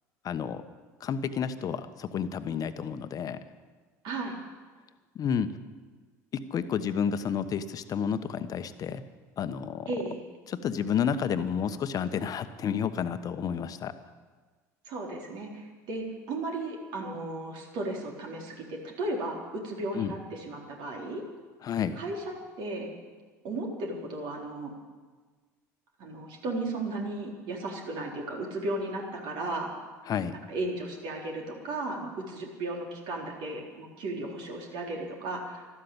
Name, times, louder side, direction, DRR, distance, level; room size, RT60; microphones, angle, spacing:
voice 1, 0.2-0.6 1.0-3.4 5.1-5.5 6.3-9.0 9.4-9.9 10.5-13.9 19.9-20.1 21.6-22.0 30.1-30.3, left 7 dB, 45° left, 11 dB, 1.2 m, -30 dB
voice 2, 4.0-4.4 9.9-10.2 14.9-21.2 22.0-22.9 23.4-24.7 26.0-29.7 30.5-35.6, right 2 dB, 60° right, 0 dB, 3.9 m, -35 dB
13.0 x 12.5 x 8.8 m, 1.4 s
hypercardioid pair, 75°, 9 cm